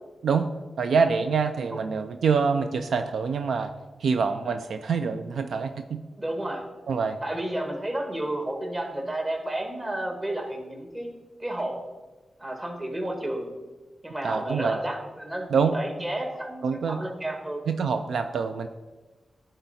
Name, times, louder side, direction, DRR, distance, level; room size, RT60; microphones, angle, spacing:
voice 1, 0.8-3.7 4.0-6.0 6.9-7.2 14.2-14.8 15.5-15.7 16.6-17.0 17.7-18.7, right 5 dB, 80° right, 8 dB, 0.3 m, -25 dB
voice 2, 6.2-6.7 7.2-11.1 11.4-11.8 12.4-13.5 14.0-17.6, right 1 dB, 30° right, 3 dB, 1.5 m, -31 dB
9.9 x 3.9 x 4.1 m, 1.2 s
cardioid pair, 55°, 0 cm